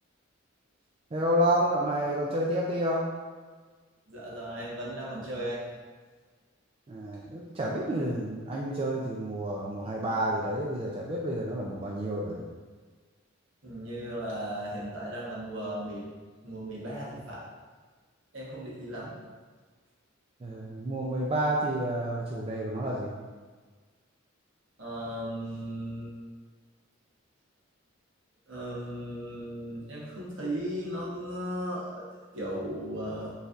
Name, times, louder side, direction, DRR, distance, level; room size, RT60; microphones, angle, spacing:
voice 1, 1.1-3.1 6.9-12.4 20.4-23.2, right 1 dB, 30° right, -3 dB, 0.4 m, -29 dB
voice 2, 4.1-5.6 13.6-16.0 16.4-17.4 18.3-19.1 24.8-26.1 28.5-32.0 32.3-33.3, equal, 65° right, -5 dB, 1.2 m, -36 dB
5.1 x 3.2 x 2.5 m, 1.4 s
head